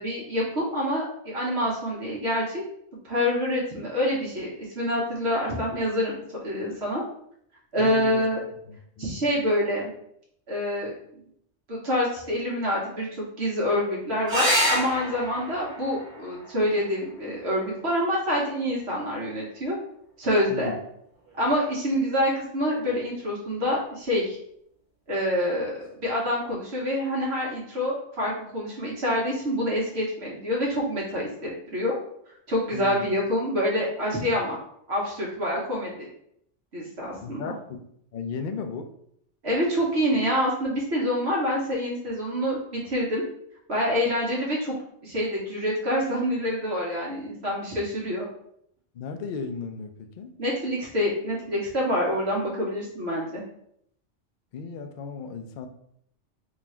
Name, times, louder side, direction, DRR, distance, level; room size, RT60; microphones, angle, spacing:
voice 1, 0.0-2.6 3.0-4.5 4.7-7.0 7.7-8.4 9.0-9.9 10.5-11.2 11.7-19.8 20.2-20.7 21.4-24.4 25.1-31.9 32.5-34.6 34.9-36.1 36.7-37.5 39.4-43.2 43.7-44.8 45.0-48.3 50.4-53.4, equal, 60° right, -4 dB, 1.2 m, -26 dB
voice 2, 7.8-8.2 8.7-9.2 20.5-20.8 32.7-33.0 37.2-37.9 38.1-38.9 48.9-50.3 54.5-55.7, left 5 dB, 60° left, 6 dB, 0.5 m, -35 dB
sound 1, 14.3-19.3 21.2-21.8 25.3-25.4 25.7-25.8, equal, 45° right, 1.1 m, -30 dB
3.8 x 2.4 x 4.3 m, 0.71 s
omnidirectional pair, 1.2 m